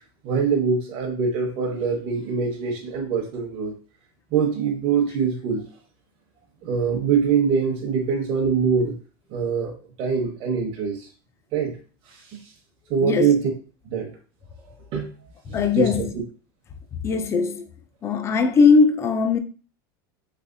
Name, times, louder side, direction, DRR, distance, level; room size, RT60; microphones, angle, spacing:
voice 1, 0.2-3.7 4.3-5.6 6.6-8.9 9.3-11.1 11.5-11.7 12.9-13.5 13.8-14.1 14.9-15.1 15.5-15.9, right 6 dB, 50° right, 0.9 m, -23 dB
voice 2, 13.0-13.3 15.5-16.0 17.0-17.6 18.0-19.4, left 5 dB, 25° left, 0.4 m, -19 dB
3.3 x 3.1 x 2.6 m
supercardioid pair, 135°, 12 cm